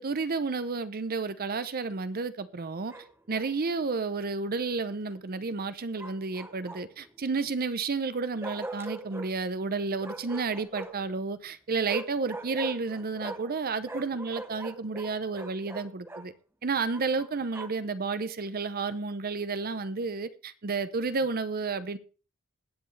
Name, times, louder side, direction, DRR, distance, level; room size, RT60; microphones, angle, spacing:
voice 1, 0.0-2.9 3.3-16.3 16.6-22.0, right 4 dB, 45° right, 0.7 m, -31 dB
Bark, 2.9-3.5 6.0-7.1 8.4-9.3 10.0-11.1 11.8-13.6 13.8-16.3 16.9-17.9, right 2 dB, 10° right, 0.9 m, -41 dB
21.0 x 7.8 x 3.3 m
head